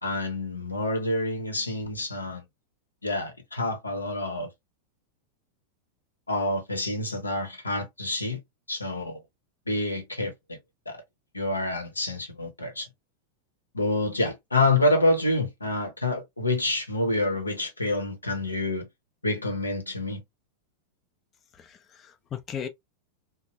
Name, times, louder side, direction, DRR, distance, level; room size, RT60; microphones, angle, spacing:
voice 1, 0.0-2.4 3.0-4.5 6.3-8.4 8.7-9.2 9.7-10.6 10.9-11.0 11.3-12.9 13.7-18.9 19.2-20.2, left 2 dB, 80° left, 0.8 m, -27 dB
voice 2, 21.5-22.7, left 8 dB, 25° left, 0.4 m, -37 dB
3.0 x 2.1 x 2.8 m
figure-of-eight pair, 90°, 0 cm